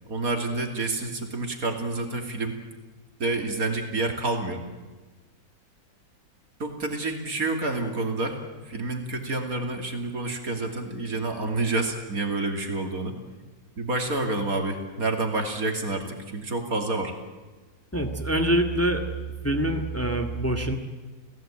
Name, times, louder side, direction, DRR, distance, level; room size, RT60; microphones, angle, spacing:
voice 1, 0.0-2.6 3.2-4.6 6.6-8.4 8.6-13.1 13.8-17.1, right 2 dB, 60° right, 4 dB, 3.2 m, -28 dB
voice 2, 17.9-19.0 19.4-20.7, right 1 dB, 10° left, 4 dB, 1.7 m, -25 dB
28.5 x 17.0 x 8.8 m, 1.3 s
omnidirectional pair, 1.7 m